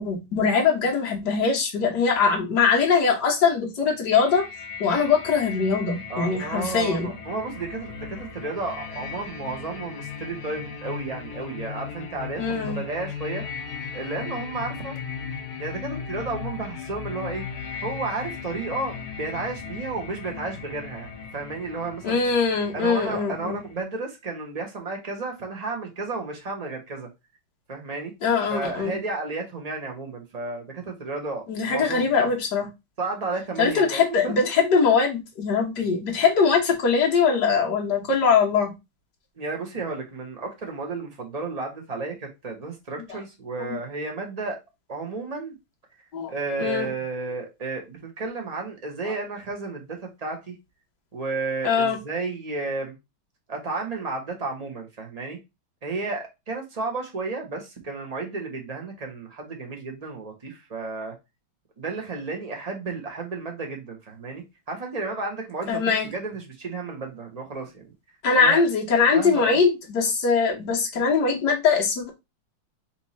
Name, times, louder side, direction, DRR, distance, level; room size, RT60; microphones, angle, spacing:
voice 1, 0.0-4.4 4.8-7.1 12.4-12.8 22.0-23.6 28.2-29.0 31.5-32.7 33.6-38.7 46.1-46.3 46.6-46.9 49.0-49.1 51.6-52.0 65.7-66.1 68.2-72.1, left 5 dB, 55° left, 1.7 m, -22 dB
sound 1, 4.1-23.8, left 6 dB, 85° left, 1.8 m, -37 dB
voice 2, 6.1-13.4 13.9-15.0 15.6-17.4 17.8-22.2 22.7-27.1 27.7-28.1 28.5-31.4 31.7-32.3 33.0-34.3 39.4-44.6 44.9-45.6 46.3-50.5 51.1-52.9 53.5-55.4 55.8-61.1 61.8-67.9 68.3-68.6 69.1-69.6, right 3 dB, 60° right, 0.4 m, -32 dB
4.4 x 2.9 x 4.1 m
omnidirectional pair, 2.3 m